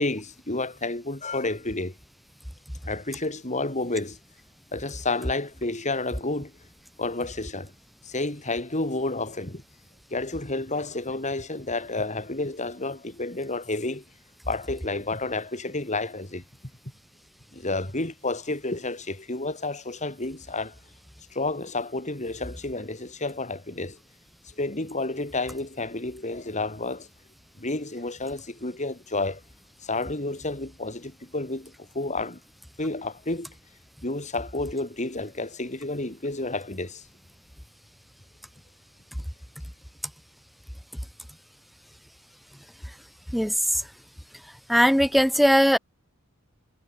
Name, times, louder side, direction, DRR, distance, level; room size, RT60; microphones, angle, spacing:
voice 1, 0.0-1.9 2.9-4.2 4.7-6.5 7.0-7.7 8.1-9.6 10.1-14.0 14.5-16.4 17.5-20.7 21.3-24.0 24.6-27.1 27.6-29.4 29.8-32.4 32.8-33.5 34.0-37.0, left 2 dB, 30° left, 4.3 m, -30 dB
voice 2, 44.7-45.8, equal, ahead, 1.2 m, -19 dB
head